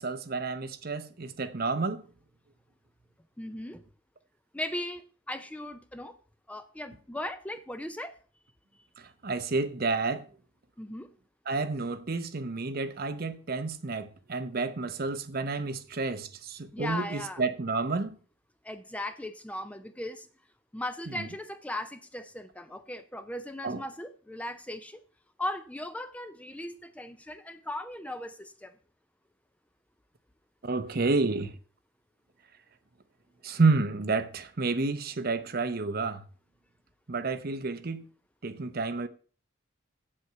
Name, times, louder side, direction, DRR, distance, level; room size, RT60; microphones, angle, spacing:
voice 1, 0.0-2.1 9.0-10.3 11.5-18.2 21.1-21.3 23.6-23.8 30.6-31.6 33.4-36.2 37.1-38.0 38.4-39.1, right 3 dB, 50° right, 0.8 m, -30 dB
voice 2, 3.4-3.8 4.5-6.2 6.5-8.1 10.8-11.1 16.7-17.4 18.6-20.3 20.7-25.0 25.4-28.7, left 1 dB, 5° left, 0.5 m, -38 dB
8.1 x 7.6 x 5.6 m
head